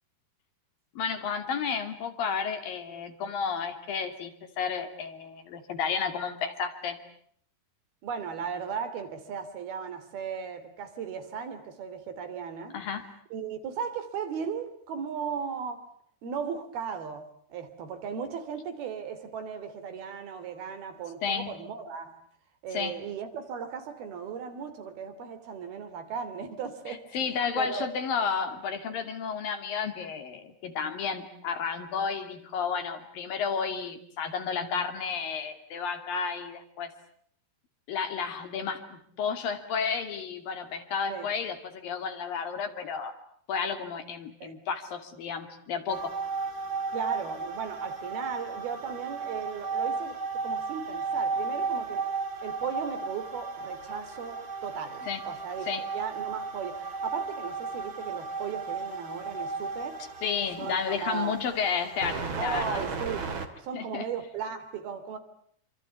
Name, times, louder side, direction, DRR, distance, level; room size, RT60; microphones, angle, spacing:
voice 1, 1.0-7.0 12.7-13.1 21.2-21.5 22.7-23.0 26.9-36.9 37.9-43.1 43.5-46.1 55.0-55.2 55.7-55.8 60.2-62.8 63.7-64.1, left 6 dB, 65° left, 8 dB, 4.2 m, -32 dB
voice 2, 8.0-12.8 13.3-15.8 16.2-17.2 17.5-22.2 22.6-27.1 27.6-27.9 41.1-41.3 44.4-44.6 46.9-50.2 50.4-52.0 52.4-60.0 60.6-61.4 62.4-63.3 63.6-65.2, right 6 dB, 70° right, 9 dB, 4.8 m, -36 dB
sound 1, 45.9-63.5, right 4 dB, 35° right, 2.8 m, -34 dB
28.0 x 25.5 x 8.2 m, 0.63 s
omnidirectional pair, 4.5 m